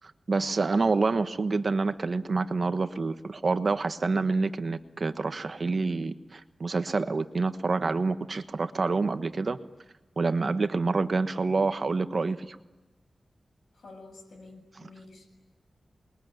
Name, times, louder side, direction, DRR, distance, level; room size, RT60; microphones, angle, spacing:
voice 1, 0.3-9.6 10.2-12.6, right 3 dB, 55° right, 10 dB, 1.3 m, -27 dB
voice 2, 13.7-15.3, left 3 dB, 85° left, 4 dB, 7.7 m, -49 dB
27.5 x 22.0 x 9.5 m, 1.1 s
wide cardioid pair, 85°, 0 cm